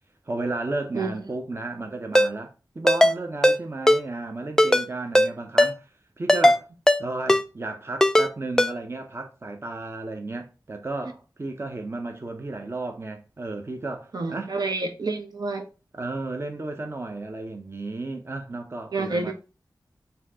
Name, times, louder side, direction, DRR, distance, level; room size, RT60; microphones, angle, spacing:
voice 1, 0.3-5.9 6.2-6.7 7.0-14.5 15.9-19.3, right 2 dB, 35° right, 0.6 m, -33 dB
Ringtone, 2.2-2.3 2.9-3.1 3.4-3.6 3.9-4.0 4.6-4.9 5.2-5.3 5.6-5.7 6.3-6.6 6.9-7.0 7.3-7.4 8.0-8.3 8.6-8.7, left 1 dB, 10° left, 0.3 m, -17 dB
voice 2, 14.1-15.6 18.9-19.3, right 3 dB, 75° right, 0.8 m, -28 dB
4.2 x 2.8 x 3.5 m
wide cardioid pair, 75°, 7 cm